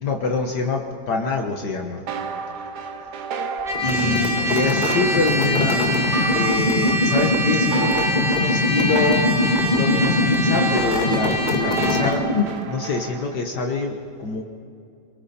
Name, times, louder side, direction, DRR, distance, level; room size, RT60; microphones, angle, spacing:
voice 1, 0.0-2.0 3.8-9.3 9.7-14.4, left 4 dB, 65° left, 2 dB, 1.9 m, -25 dB
sound 1, 2.1-13.4, right 5 dB, 65° right, 1.5 m, -32 dB
Trumpet, 3.6-12.2, equal, 30° right, 3.6 m, -25 dB
sound 2, 3.7-12.7, left 2 dB, 25° left, 1.7 m, -23 dB
28.0 x 22.0 x 4.3 m, 2.4 s
omnidirectional pair, 1.9 m